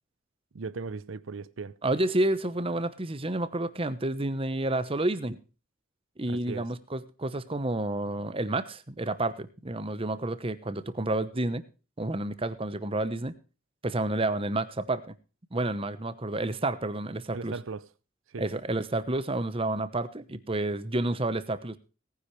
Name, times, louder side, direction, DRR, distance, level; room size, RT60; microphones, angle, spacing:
voice 1, 0.5-1.8 6.3-6.7 17.3-17.9 18.3-18.4, right 4 dB, 80° right, 0.6 m, -37 dB
voice 2, 1.8-5.4 6.2-11.6 12.0-13.3 13.8-15.1 15.5-17.5 18.4-21.8, right 2 dB, 30° right, 1.0 m, -30 dB
18.0 x 9.9 x 3.2 m
head